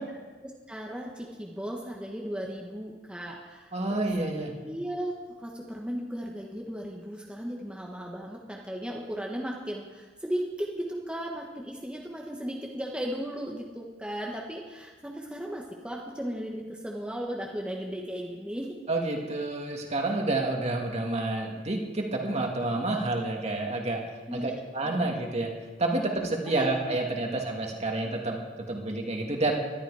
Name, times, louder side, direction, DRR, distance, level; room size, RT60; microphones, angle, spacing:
voice 1, 0.4-4.1 4.6-5.1 5.4-18.8 24.3-24.5 24.8-25.0 26.5-26.7, equal, 5° right, -2 dB, 1.4 m, -36 dB
voice 2, 3.7-4.5 18.9-24.0 24.3-25.5 25.8-28.4 28.7-29.5, right 2 dB, 35° right, 1 dB, 2.3 m, -29 dB
20.5 x 12.5 x 4.9 m, 1.3 s
head